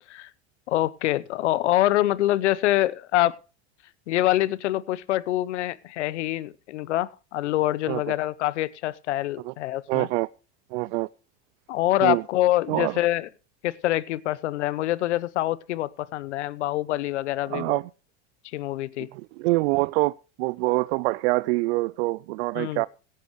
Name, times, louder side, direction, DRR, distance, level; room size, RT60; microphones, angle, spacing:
voice 1, 0.7-3.3 4.1-10.1 11.7-13.3 13.6-17.8 18.5-19.1 22.5-22.8, left 15 dB, 85° left, 0.8 m, -25 dB
voice 2, 9.9-10.3 10.7-11.1 12.0-12.2 12.7-12.9 17.5-17.9 19.1-22.9, right 23 dB, 70° right, 0.5 m, -25 dB
17.0 x 10.5 x 3.1 m
hypercardioid pair, 95°, 34 cm